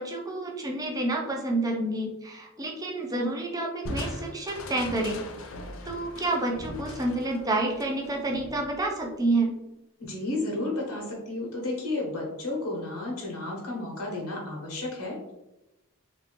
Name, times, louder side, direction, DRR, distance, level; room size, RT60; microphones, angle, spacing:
voice 1, 0.0-5.2 5.8-9.5, right 2 dB, 15° right, 1 dB, 0.4 m, -29 dB
Crushing, 3.8-9.2, left 1 dB, 60° left, 0.4 m, -40 dB
voice 2, 10.0-15.3, left 2 dB, 80° left, -2 dB, 1.0 m, -32 dB
3.2 x 2.7 x 3.0 m, 0.95 s
head